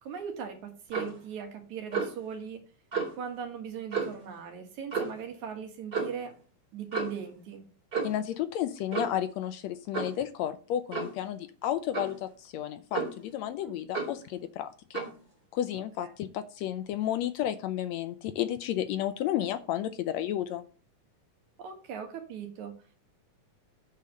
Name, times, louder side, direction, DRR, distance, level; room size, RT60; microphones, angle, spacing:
voice 1, 0.0-2.6 3.2-6.3 6.7-7.6 13.6-13.7 16.0-16.1 21.6-22.7, right 7 dB, 75° right, 4 dB, 2.9 m, -39 dB
Clock, 0.9-1.2 1.9-2.2 2.9-3.1 3.9-4.2 4.9-5.2 5.9-6.2 6.9-7.2 7.9-8.3 8.9-9.2 9.9-10.2 10.9-11.2 11.9-12.2 12.9-13.3 13.9-14.2 14.9-15.2, right 4 dB, 30° right, 3.3 m, -32 dB
voice 2, 8.0-15.0 15.5-20.7, left 11 dB, 75° left, 11 dB, 1.7 m, -32 dB
8.5 x 4.5 x 6.4 m, 0.39 s
omnidirectional pair, 3.4 m